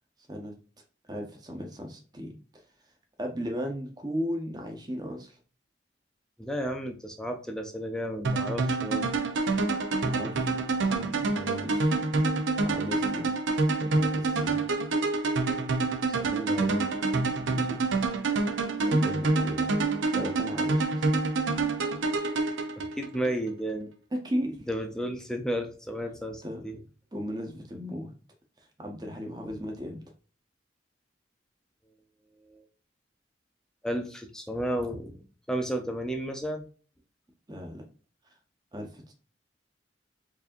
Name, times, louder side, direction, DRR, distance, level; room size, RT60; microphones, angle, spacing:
voice 1, 1.1-2.6 3.2-5.4 10.0-10.6 10.9-11.9 12.6-13.3 13.8-14.7 17.5-17.8 18.9-19.8 20.1-21.0 24.1-24.6 26.4-26.7 27.1-28.2 28.6-30.0 37.5-37.8 38.7-39.1, equal, 20° right, 3 dB, 0.8 m, -36 dB
voice 2, 6.4-9.1 16.2-16.9 22.8-23.9 24.7-26.8 32.5-32.6 33.8-35.2 35.5-36.6, right 1 dB, 5° left, 4 dB, 0.5 m, -33 dB
sound 1, 8.2-23.3, right 3 dB, 80° right, 0.6 m, -27 dB
4.8 x 2.7 x 2.5 m, 0.39 s
head